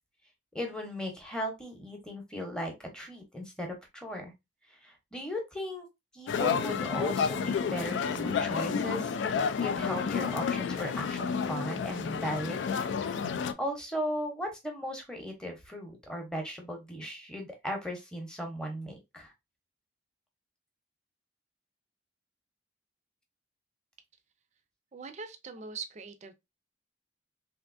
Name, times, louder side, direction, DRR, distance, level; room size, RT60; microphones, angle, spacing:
voice 1, 0.5-4.3 4.7-5.9 6.1-19.3, equal, 5° left, 0.8 m, -37 dB
sound 1, 6.3-13.5, left 6 dB, 80° left, 0.3 m, -30 dB
voice 2, 24.9-26.3, right 5 dB, 40° right, 0.4 m, -42 dB
3.4 x 2.5 x 2.5 m
head